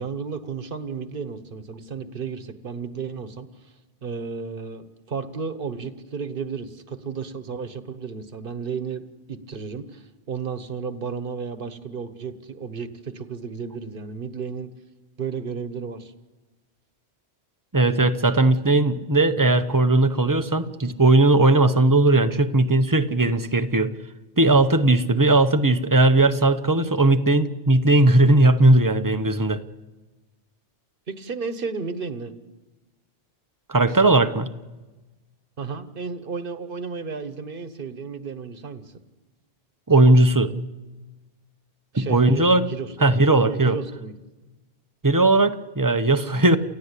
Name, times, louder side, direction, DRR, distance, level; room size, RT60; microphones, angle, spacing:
voice 1, 0.0-3.5 4.0-14.7 15.2-16.1 31.1-32.3 35.6-38.8 41.9-42.9 43.4-44.1, right 5 dB, 55° right, 10 dB, 1.4 m, -33 dB
voice 2, 17.7-23.9 24.4-29.6 33.7-34.5 39.9-40.5 41.9-42.7 43.0-43.8 45.0-46.6, right 2 dB, 20° right, 10 dB, 0.8 m, -18 dB
29.0 x 15.0 x 8.3 m, 1.2 s
omnidirectional pair, 1.1 m